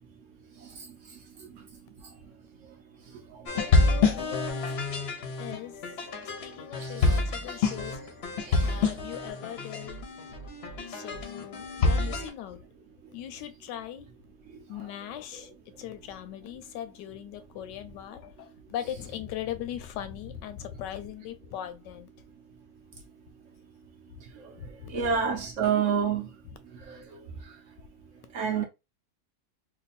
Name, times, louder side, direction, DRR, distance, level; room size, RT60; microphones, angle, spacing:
voice 1, 3.5-4.8 5.4-5.8 6.2-8.0 8.6-10.1 10.9-12.6 13.1-14.1 14.7-15.5 15.8-22.1 24.6-24.9 26.5-26.6, left 11 dB, 80° left, 1.2 m, -39 dB
sound 1, 3.5-12.3, left 3 dB, 55° left, 0.7 m, -27 dB
voice 2, 6.8-7.2 8.4-8.7 24.9-26.3 28.3-28.6, right 7 dB, 65° right, 0.8 m, -27 dB
3.1 x 2.2 x 4.1 m
omnidirectional pair, 1.9 m